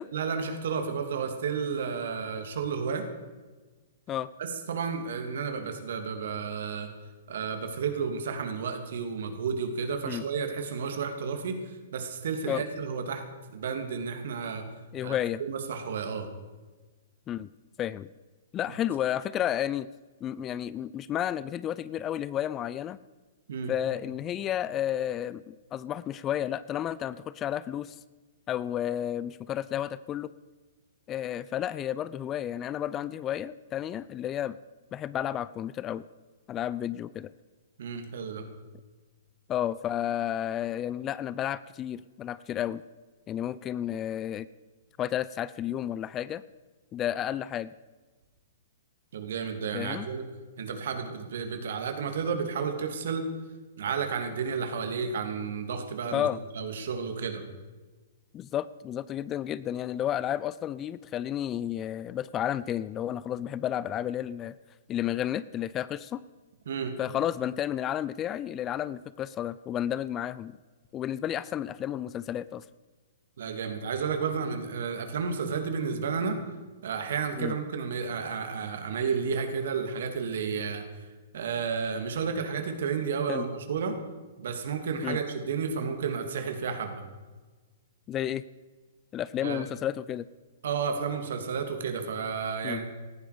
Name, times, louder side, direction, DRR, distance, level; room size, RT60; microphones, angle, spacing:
voice 1, 0.1-3.1 4.4-6.9 7.3-13.2 13.5-14.6 15.0-16.3 23.5-23.7 37.8-38.5 49.1-50.2 50.6-53.2 53.8-56.3 56.5-57.4 66.7-66.9 73.4-76.4 76.8-80.8 81.3-84.0 84.4-87.0 89.4-89.7 90.6-92.9, right 6 dB, 65° right, 5 dB, 3.0 m, -32 dB
voice 2, 14.9-15.4 17.3-17.5 17.8-18.1 18.5-19.9 20.2-23.0 23.7-27.9 28.5-30.3 31.1-34.6 34.9-36.0 36.5-37.3 39.5-42.8 43.3-44.5 45.0-46.4 46.9-47.7 49.7-50.1 56.1-56.4 58.3-64.5 64.9-66.2 67.0-70.6 70.9-72.6 77.4-77.6 83.3-83.4 85.0-85.2 88.1-88.4 89.1-90.3 92.6-92.8, left 11 dB, 25° left, 18 dB, 0.5 m, -31 dB
18.5 x 15.0 x 5.2 m, 1.3 s
hypercardioid pair, 120°, 0 cm